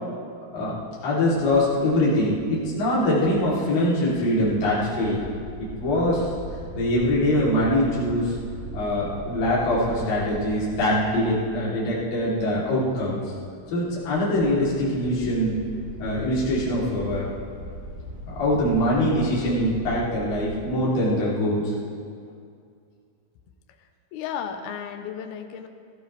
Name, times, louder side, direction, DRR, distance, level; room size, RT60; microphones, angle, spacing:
voice 1, 1.0-5.2 5.6-6.3 6.7-8.3 8.7-13.2 13.7-15.5 16.0-17.3 18.3-21.7, left 1 dB, 55° left, -8 dB, 4.9 m, -23 dB
sound 1, 2.4-20.7, equal, 5° right, 2.7 m, -40 dB
voice 2, 24.1-25.7, left 8 dB, 75° left, 6 dB, 2.6 m, -33 dB
21.0 x 14.0 x 3.4 m, 2.3 s
omnidirectional pair, 4.9 m